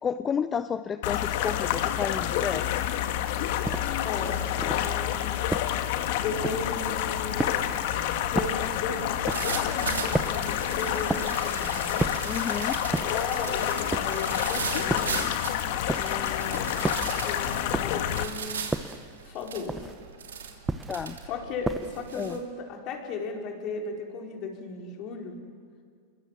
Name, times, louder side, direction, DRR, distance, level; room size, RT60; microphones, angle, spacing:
voice 1, 0.0-2.8 12.3-12.8 20.9-21.2 22.2-22.4, left 7 dB, 25° left, 12 dB, 0.7 m, -31 dB
sound 1, 1.0-18.2, left 11 dB, 65° left, 1.6 m, -29 dB
sound 2, 2.8-3.1 3.4-22.4, right 6 dB, 85° right, 2.9 m, -39 dB
sound 3, 3.6-4.0 4.6-5.0 5.5-5.9 6.4-6.8 7.4-7.8 8.3-8.7 9.3-9.6 10.1-10.5 11.1-11.5 12.0-12.4 12.9-13.3 13.9-14.3 14.9-15.3 15.9-16.3 16.8-17.2 17.7-18.1 18.7-19.1 19.7-20.1 20.7-21.1 21.7-22.1, right 2 dB, 10° right, 1.1 m, -32 dB
voice 2, 4.0-5.4 6.2-7.8 8.3-12.2 12.9-15.3 15.9-16.8 17.2-18.7 19.2-19.9 21.2-25.4, left 4 dB, 45° left, 1 dB, 4.5 m, -36 dB
27.5 x 23.0 x 7.5 m, 2.2 s
hypercardioid pair, 100°, 0 cm